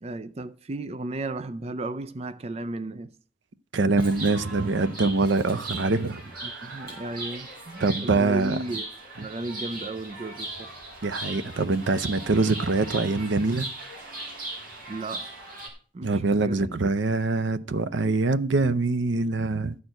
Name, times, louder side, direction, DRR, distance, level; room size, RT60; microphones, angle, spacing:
voice 1, 0.0-3.1 6.4-8.9 9.2-10.7 14.9-15.4 15.9-16.9, right 2 dB, 30° right, 0.4 m, -35 dB
voice 2, 3.7-6.9 7.8-8.6 11.0-13.7 16.0-19.8, right 3 dB, 70° right, 0.6 m, -24 dB
Chirp tweet, 3.9-15.7, right 2 dB, 50° right, 3.5 m, -39 dB
12.5 x 4.5 x 7.8 m
head